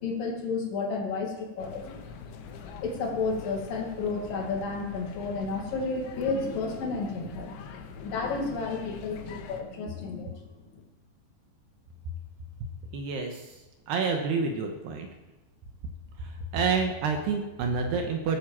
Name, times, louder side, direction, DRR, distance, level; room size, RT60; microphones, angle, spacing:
voice 1, 0.0-1.8 2.8-10.4 10.7-10.8, left 4 dB, 55° left, 1 dB, 3.6 m, -32 dB
sound 1, 1.6-9.6, left 6 dB, 80° left, 3.7 m, -44 dB
voice 2, 12.9-13.6 13.9-15.1 16.2-18.4, right 5 dB, 70° right, 3 dB, 3.0 m, -28 dB
17.5 x 8.5 x 7.5 m, 1.1 s
omnidirectional pair, 5.4 m